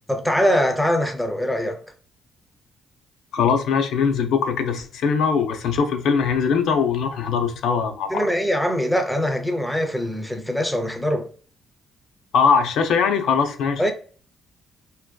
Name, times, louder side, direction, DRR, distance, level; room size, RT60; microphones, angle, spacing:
voice 1, 0.1-1.8 8.1-11.3 13.8-13.9, equal, ahead, 0.4 m, -22 dB
voice 2, 3.3-8.1 12.3-13.9, left 6 dB, 80° left, 0.3 m, -21 dB
2.5 x 2.1 x 2.2 m
cardioid pair, 90°, 0 cm